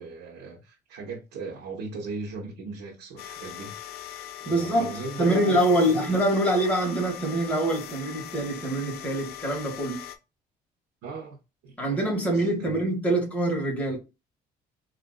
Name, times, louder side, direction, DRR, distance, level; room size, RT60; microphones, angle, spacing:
voice 1, 0.0-3.7 4.4-6.1 11.0-11.4 11.6-12.0 12.3-12.8, right 3 dB, 90° right, 0.9 m, -37 dB
sound 1, 3.2-10.2, left 11 dB, 70° left, 0.5 m, -41 dB
voice 2, 4.4-10.0 11.8-14.0, right 1 dB, 10° left, 1.6 m, -25 dB
4.2 x 2.5 x 2.2 m
cardioid pair, 110°, 17 cm